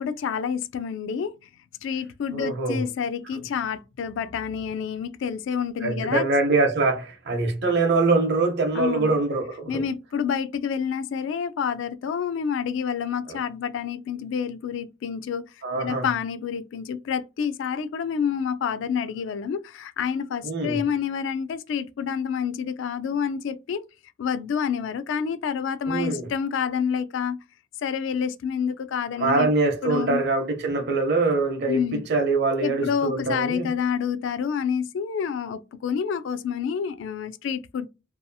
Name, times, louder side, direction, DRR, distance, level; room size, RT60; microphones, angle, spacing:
voice 1, 0.0-1.3 1.8-6.2 8.7-9.2 9.7-15.4 15.7-23.8 24.2-27.4 27.8-29.5 29.8-30.2 31.7-32.0 32.6-37.9, left 7 dB, 65° left, 0.3 m, -28 dB
voice 2, 2.3-2.9 5.8-9.8 13.3-13.4 15.6-16.1 20.4-20.8 25.9-26.3 29.2-33.7, right 3 dB, 60° right, 0.7 m, -24 dB
2.7 x 2.3 x 2.6 m
head